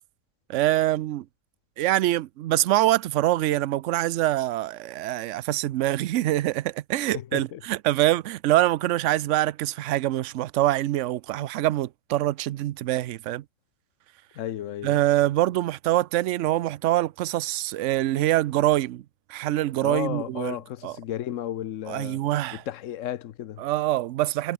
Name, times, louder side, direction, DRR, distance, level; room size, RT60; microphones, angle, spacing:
voice 1, 0.5-1.2 1.8-13.4 14.8-19.0 19.3-20.6 20.8-21.0 21.9-22.6 23.6-24.5, right 15 dB, 75° right, 0.9 m, -24 dB
voice 2, 7.1-7.6 14.3-15.0 19.8-22.2 22.7-23.6, left 11 dB, 85° left, 1.1 m, -33 dB
omnidirectional pair, 1.3 m